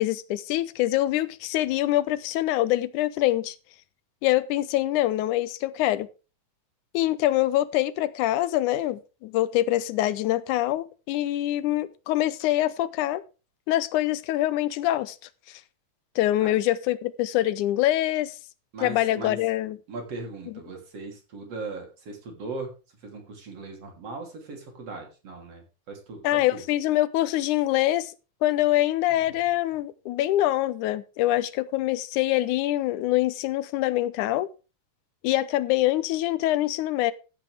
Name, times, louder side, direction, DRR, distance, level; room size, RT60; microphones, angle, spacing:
voice 1, 0.0-3.6 4.2-6.1 6.9-13.2 13.7-15.2 15.5-15.6 16.2-18.4 18.8-19.8 26.2-28.1 28.4-34.5 35.2-37.1, left 15 dB, 85° left, 2.2 m, -24 dB
voice 2, 18.7-19.4 19.9-22.7 23.0-26.6, right 3 dB, 55° right, 4.2 m, -38 dB
14.5 x 9.3 x 3.5 m
omnidirectional pair, 3.5 m